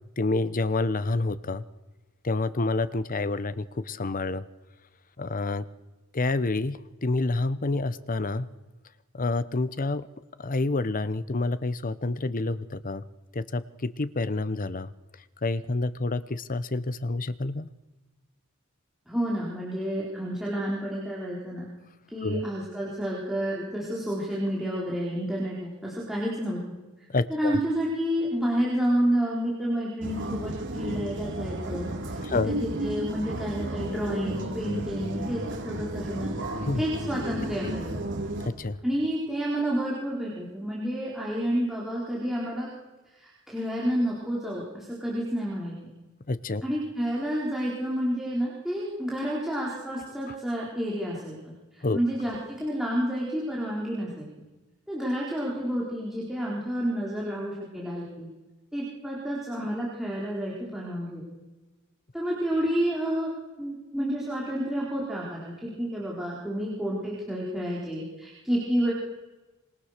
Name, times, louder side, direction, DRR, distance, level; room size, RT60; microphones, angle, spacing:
voice 1, 0.2-1.6 2.2-4.4 5.2-5.7 6.1-8.5 9.1-10.1 10.4-13.0 13.3-14.9 15.4-17.7 22.2-22.4 27.1-27.6 32.2-32.5 36.6-36.8 38.4-38.8 46.3-46.6 50.3-50.4 51.8-52.0, left 2 dB, 40° left, 15 dB, 0.9 m, -28 dB
voice 2, 19.1-21.7 22.1-26.6 27.3-31.9 32.3-36.4 36.8-38.0 38.8-42.7 43.5-45.7 46.6-51.5 51.9-54.3 54.9-58.3 58.7-61.2 62.1-63.3 63.6-68.9, equal, ahead, -6 dB, 4.3 m, -29 dB
sound 1, 30.0-38.5, right 1 dB, 60° right, 3.6 m, -33 dB
26.5 x 24.5 x 6.7 m, 1.2 s
head